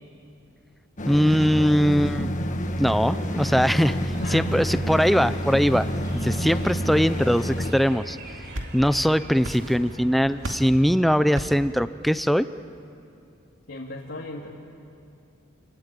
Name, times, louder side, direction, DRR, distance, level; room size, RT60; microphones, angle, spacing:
sound 1, 1.0-7.7, equal, 40° left, 1.6 m, -28 dB
voice 1, 1.0-2.3 2.8-5.9 6.1-8.2 8.7-12.5, equal, ahead, 12 dB, 0.6 m, -21 dB
sound 2, 3.0-10.6, right 1 dB, 55° right, 3.1 m, -43 dB
voice 2, 4.2-4.5 6.7-7.2 13.7-14.5, left 2 dB, 75° left, -4 dB, 2.5 m, -36 dB
sound 3, 8.1-9.1 9.4-10.0 10.4-10.8 11.4-11.7, right 1 dB, 85° right, 2.5 m, -35 dB
29.0 x 22.5 x 9.2 m, 2.5 s
head